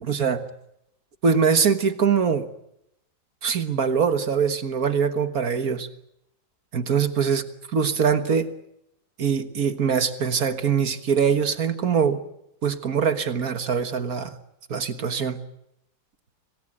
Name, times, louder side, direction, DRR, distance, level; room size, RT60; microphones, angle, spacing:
voice 1, 0.0-0.5 1.2-2.5 3.4-5.9 6.7-8.5 9.2-12.2 12.6-14.3 14.7-15.4, right 6 dB, 55° right, 10 dB, 1.7 m, -23 dB
26.5 x 19.0 x 8.9 m, 0.81 s
omnidirectional pair, 2.0 m